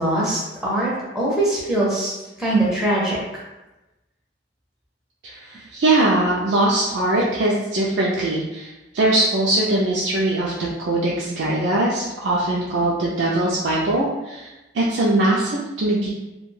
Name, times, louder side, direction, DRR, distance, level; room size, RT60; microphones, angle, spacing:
voice 1, 0.0-3.2, right 1 dB, 5° right, -6 dB, 0.5 m, -22 dB
voice 2, 5.2-16.1, right 1 dB, 70° right, -6 dB, 0.4 m, -21 dB
2.3 x 2.2 x 3.1 m, 1.0 s
head